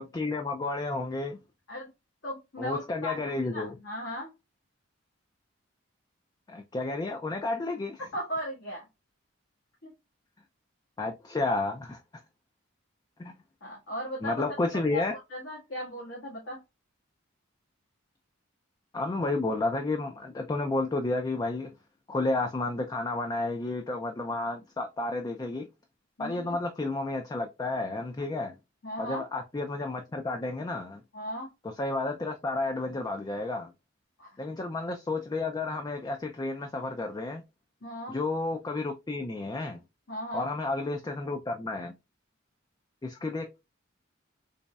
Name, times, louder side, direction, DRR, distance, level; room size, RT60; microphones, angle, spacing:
voice 1, 0.0-1.4 2.6-3.7 6.5-8.0 11.0-12.0 13.2-13.4 14.2-15.1 18.9-21.7 22.1-25.7 26.2-28.6 29.0-31.0 31.8-33.7 34.4-37.4 38.1-39.8 40.3-41.9 43.0-43.6, left 2 dB, 20° left, 0.3 m, -31 dB
voice 2, 2.2-4.3 8.0-8.9 9.8-9.9 13.6-14.5 14.9-16.6 26.2-26.6 28.2-28.3 28.8-29.2 31.1-31.5 34.2-34.4 37.8-38.2 40.1-40.5, equal, 75° left, 1.5 m, -37 dB
4.0 x 3.1 x 2.2 m
head